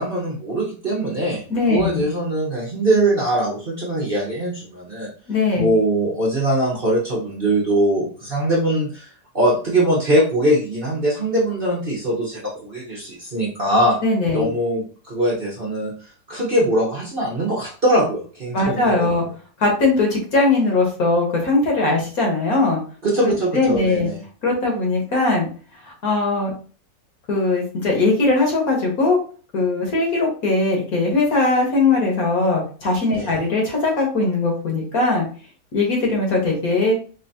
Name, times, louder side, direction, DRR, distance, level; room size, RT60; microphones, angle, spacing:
voice 1, 0.0-1.4 1.7-5.1 5.6-9.1 9.3-14.0 14.3-15.9 16.3-19.3 23.0-24.2 33.1-33.5, right 1 dB, 35° right, -5 dB, 1.0 m, -21 dB
voice 2, 1.5-2.0 5.3-5.7 14.0-14.5 18.5-19.2 19.6-22.8 23.2-24.1 24.4-25.5 25.8-26.5 27.3-29.2 29.5-35.3 35.7-37.0, left 3 dB, 55° left, -1 dB, 1.6 m, -20 dB
4.4 x 2.9 x 2.6 m, 0.39 s
omnidirectional pair, 2.0 m